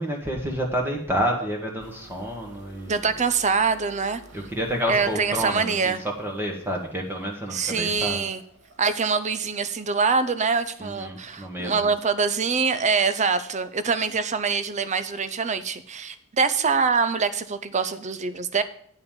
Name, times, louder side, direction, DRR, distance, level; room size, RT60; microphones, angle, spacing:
voice 1, 0.0-2.9 4.3-8.2 10.8-11.9, equal, 10° right, 0 dB, 1.5 m, -29 dB
sound 1, 1.8-11.8, right 2 dB, 60° right, 2.1 m, -52 dB
voice 2, 2.9-4.2 4.9-6.0 7.5-8.4 8.8-18.6, right 5 dB, 35° right, 13 dB, 0.6 m, -24 dB
9.1 x 5.6 x 7.1 m, 0.63 s
head